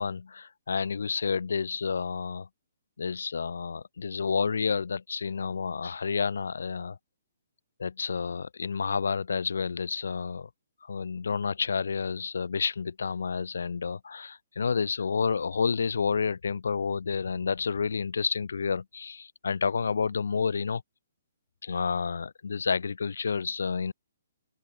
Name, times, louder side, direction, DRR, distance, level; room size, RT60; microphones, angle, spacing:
voice 1, 0.0-2.5 3.0-7.0 7.8-10.5 10.9-20.8 21.6-23.9, left 5 dB, 80° left, 1.6 m, -30 dB
hypercardioid pair, 180°, 0 cm